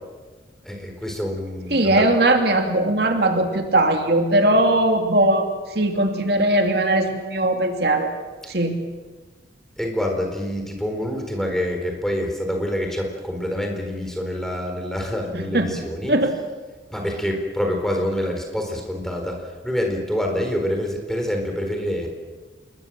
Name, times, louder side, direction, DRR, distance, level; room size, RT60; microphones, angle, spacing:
voice 1, 0.6-2.1 9.8-16.1 16.9-22.1, equal, ahead, 2 dB, 4.2 m, -26 dB
voice 2, 1.7-5.5 5.7-8.1 8.5-8.7 15.3-15.7 16.1-16.3, right 1 dB, 60° right, 4 dB, 2.7 m, -19 dB
28.0 x 22.0 x 7.7 m, 1.3 s
head